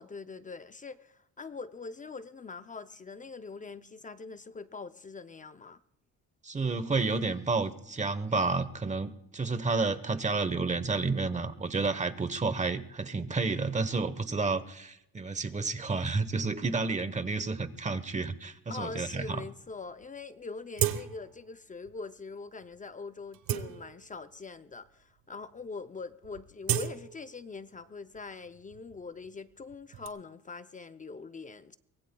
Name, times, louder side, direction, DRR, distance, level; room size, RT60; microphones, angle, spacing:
voice 1, 0.0-5.8 18.7-31.8, left 4 dB, 25° left, 0.5 m, -43 dB
voice 2, 6.4-19.4, right 3 dB, 20° right, 1.0 m, -30 dB
sound 1, 20.0-20.1 20.7-21.4 21.8-22.0 22.6-22.8 23.2-24.3 25.0-25.1 25.4-25.7 26.0-27.8 28.1-30.1, right 11 dB, 75° right, 1.2 m, -35 dB
24.0 x 20.5 x 2.3 m
cardioid pair, 120°, 35 cm